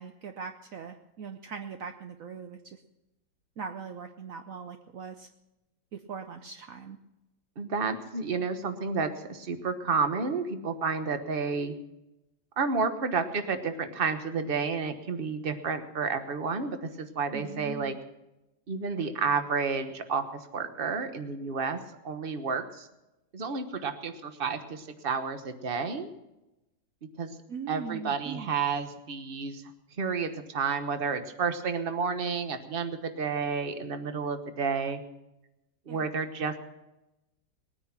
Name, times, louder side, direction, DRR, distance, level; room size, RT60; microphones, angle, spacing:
voice 1, 0.0-2.6 3.6-5.3 5.9-7.0 17.3-18.0 27.5-28.5 35.9-36.0, right 6 dB, 70° right, 7 dB, 0.8 m, -40 dB
voice 2, 7.6-11.7 12.6-17.9 18.7-20.2 20.5-21.8 22.0-22.9 23.3-26.1 27.2-27.3 27.7-29.6 30.0-35.0 35.9-36.6, right 5 dB, 35° right, 8 dB, 1.0 m, -31 dB
20.0 x 9.7 x 5.9 m, 0.96 s
omnidirectional pair, 2.3 m